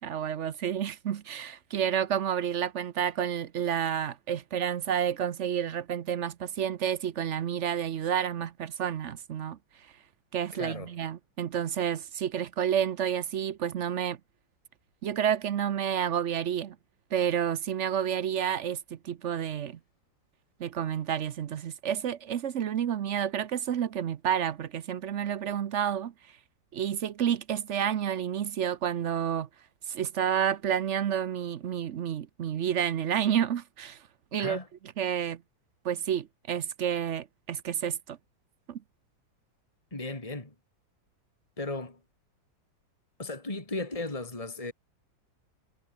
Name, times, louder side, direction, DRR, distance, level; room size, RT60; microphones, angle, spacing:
voice 1, 0.0-9.6 10.3-14.2 15.0-16.8 17.1-19.8 20.6-26.1 26.7-29.5 29.9-34.0 34.3-34.6 35.0-35.4 35.8-38.2 38.7-38.8, right 9 dB, 55° right, 0.8 m, -30 dB
voice 2, 10.5-10.9 34.4-34.7 39.9-40.5 41.6-42.0 43.2-44.7, left 2 dB, 15° left, 3.5 m, -36 dB
omnidirectional pair, 2.1 m